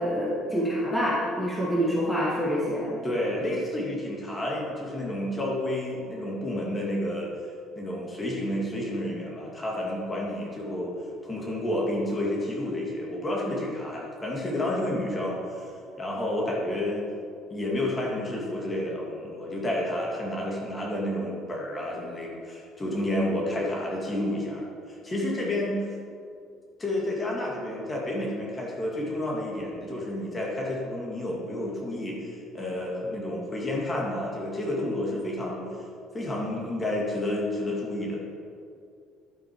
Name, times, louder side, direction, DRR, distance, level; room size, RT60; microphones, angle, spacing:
voice 1, 0.0-3.0, equal, ahead, -6 dB, 1.8 m, -26 dB
voice 2, 3.0-7.3 7.8-10.9 11.2-15.7 16.0-17.1 17.5-24.7 25.0-25.9 26.8-35.7 36.1-38.2, left 1 dB, 20° left, -3 dB, 2.1 m, -30 dB
11.5 x 8.1 x 4.7 m, 2.4 s
cardioid pair, 140°, 0 cm